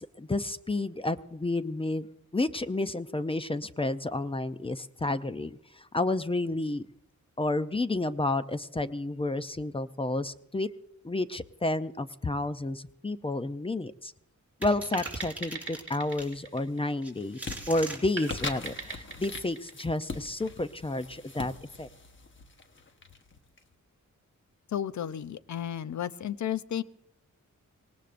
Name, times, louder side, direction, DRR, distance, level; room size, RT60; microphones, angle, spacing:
voice 1, 0.0-2.1 2.3-6.9 7.4-10.7 11.0-14.1 14.6-17.4 17.7-21.5 21.8-21.9, left 2 dB, 20° left, 12 dB, 0.5 m, -31 dB
sound 1, 14.6-16.3 17.0-18.0, right 1 dB, 5° right, 3.9 m, -40 dB
sound 2, 14.9-17.5 18.2-20.7, right 3 dB, 40° right, 1.5 m, -41 dB
sound 3, 16.2-16.6 17.0-23.6, left 3 dB, 40° left, 1.1 m, -42 dB
voice 2, 24.7-26.8, left 10 dB, 70° left, 15 dB, 0.6 m, -33 dB
25.0 x 18.5 x 2.5 m, 0.78 s
wide cardioid pair, 120°, 30 cm